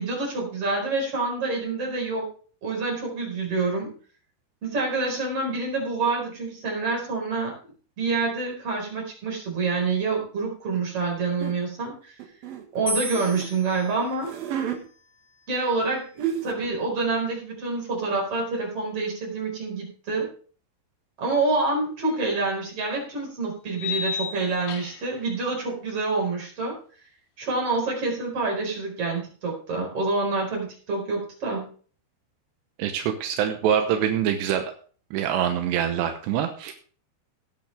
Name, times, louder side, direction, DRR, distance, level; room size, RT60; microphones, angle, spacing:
voice 1, 0.0-2.3 2.6-4.0 4.6-7.5 8.0-12.1 12.7-14.3 15.5-16.1 16.4-20.3 21.2-26.8 27.4-31.7, right 3 dB, 35° right, -1 dB, 5.4 m, -27 dB
sound 1, 11.4-11.6 12.2-13.5 14.1-14.8 15.8-15.9 16.2-16.7, right 9 dB, 65° right, 3.0 m, -31 dB
sound 2, 12.9-16.1, left 2 dB, 20° left, 2.4 m, -37 dB
Graveyard Gate, 22.1-22.2 23.7-25.2, left 7 dB, 85° left, 4.1 m, -32 dB
voice 2, 32.8-34.7 35.1-36.7, right 9 dB, 80° right, 6 dB, 3.1 m, -25 dB
18.0 x 8.9 x 3.4 m, 0.42 s
omnidirectional pair, 5.0 m